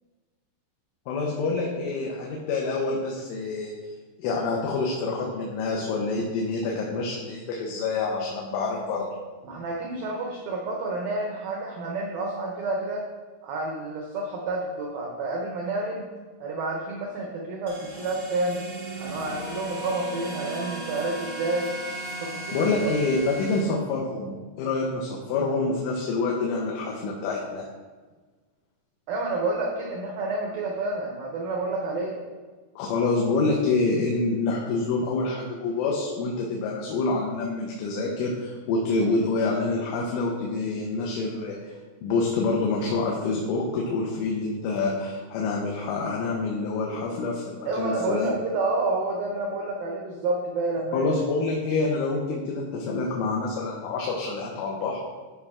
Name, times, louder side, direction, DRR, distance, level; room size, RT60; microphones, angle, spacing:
voice 1, 1.1-3.7 4.2-9.0 22.5-27.7 32.8-41.7 42.0-48.3 50.9-55.0, left 3 dB, 80° left, -1 dB, 3.4 m, -27 dB
voice 2, 9.4-13.1 13.4-16.1 16.4-18.6 19.0-21.7 22.2-22.9 29.1-32.2 47.7-51.1, right 2 dB, 90° right, 0 dB, 2.0 m, -29 dB
sound 1, 17.7-23.6, right 1 dB, 40° right, 1.4 m, -36 dB
13.5 x 5.5 x 3.6 m, 1.4 s
omnidirectional pair, 5.5 m